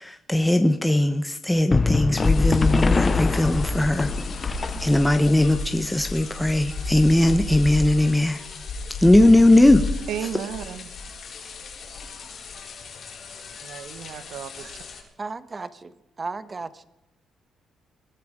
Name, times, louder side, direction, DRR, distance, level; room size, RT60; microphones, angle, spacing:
voice 1, 0.0-4.1 4.4-8.4 9.0-9.8, left 1 dB, 5° left, 7 dB, 0.9 m, -19 dB
sound 1, 1.7-5.2, left 4 dB, 30° left, 0.6 m, -23 dB
sound 2, 2.2-15.0, left 3 dB, 60° left, 4.7 m, -32 dB
voice 2, 10.1-10.9 13.6-14.8, right 9 dB, 85° right, 11 dB, 1.1 m, -34 dB
voice 3, 15.2-15.9 16.2-16.8, right 3 dB, 30° right, 13 dB, 1.1 m, -34 dB
20.5 x 13.0 x 5.1 m, 0.95 s
cardioid pair, 90°, 0 cm